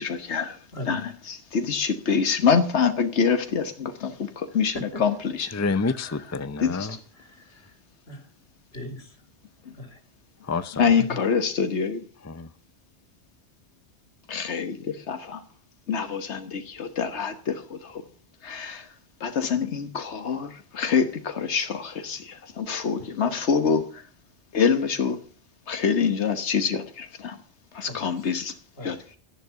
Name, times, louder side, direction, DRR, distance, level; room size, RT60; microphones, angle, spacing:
voice 1, 0.0-4.7 5.0-5.5 5.8-6.1 6.6-7.0 9.6-9.7 10.8-12.0 14.3-15.4 15.9-18.0 18.4-18.9 19.2-24.1 24.5-25.2 25.7-27.4 27.7-28.6 28.8-29.0, left 6 dB, 90° left, 8 dB, 1.5 m, -26 dB
voice 2, 0.7-1.0 4.7-5.0 6.9-7.8 8.0-8.3 8.7-9.3 9.7-10.0 10.9-11.2 23.0-23.1 27.8-28.2 28.8-29.0, left 1 dB, 70° left, 6 dB, 3.1 m, -39 dB
voice 3, 5.5-7.0 10.4-10.8 12.3-12.5, left 4 dB, 20° left, 13 dB, 0.6 m, -28 dB
13.0 x 10.5 x 6.9 m, 0.40 s
omnidirectional pair, 1.1 m